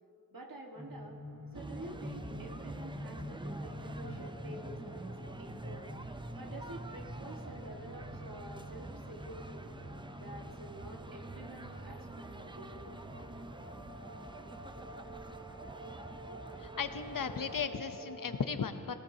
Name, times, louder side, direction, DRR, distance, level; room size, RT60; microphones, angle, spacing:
voice 1, 0.3-1.2 1.5-5.9 6.4-9.7 10.2-13.0, right 1 dB, 85° right, 0 dB, 1.6 m, -49 dB
sound 1, 0.7-18.4, equal, 60° right, 2.6 m, -47 dB
sound 2, 1.5-17.7, right 2 dB, 15° right, 0.5 m, -48 dB
voice 2, 16.6-18.9, left 6 dB, 75° left, 9 dB, 0.7 m, -36 dB
19.0 x 17.5 x 2.8 m, 2.7 s
wide cardioid pair, 65°, 33 cm